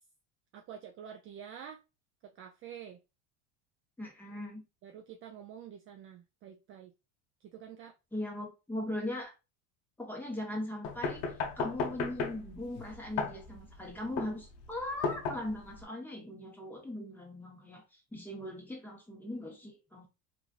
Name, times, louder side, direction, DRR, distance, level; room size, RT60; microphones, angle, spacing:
voice 1, 0.5-1.8 2.2-3.0 4.8-6.9 7.4-7.9, right 8 dB, 35° right, 0.4 m, -48 dB
voice 2, 4.0-4.6 8.1-9.3 10.0-20.1, left 1 dB, 5° left, 1.1 m, -39 dB
sound 1, 10.8-15.8, left 5 dB, 65° left, 0.7 m, -36 dB
3.0 x 2.6 x 2.4 m
supercardioid pair, 110°, 36 cm